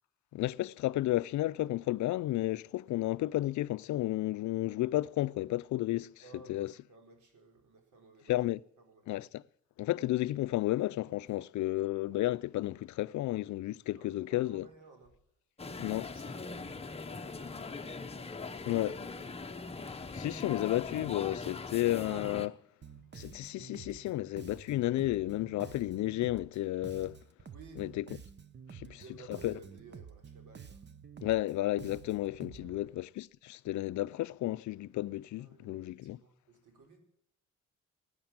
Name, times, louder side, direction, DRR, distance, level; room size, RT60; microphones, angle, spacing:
voice 1, 0.3-6.1 6.5-6.7 8.3-8.6 9.1-9.4 9.8-14.6 15.8-16.1 18.7-19.0 20.1-22.6 23.1-27.2 27.8-27.9 28.7-28.9 29.4-29.5 31.2-36.2, left 16 dB, 75° left, 0.5 m, -32 dB
voice 2, 6.2-8.4 8.8-9.2 14.0-15.2 15.6-18.0 18.4-20.3 27.5-27.9 28.8-30.9 32.6-32.9 35.4-37.0, right 4 dB, 75° right, 4.3 m, -57 dB
sound 1, 15.6-22.5, left 4 dB, 20° left, 1.0 m, -41 dB
Bass guitar, 22.8-32.7, right 7 dB, 35° right, 1.1 m, -50 dB
15.5 x 9.7 x 8.7 m
cardioid pair, 90°, 30 cm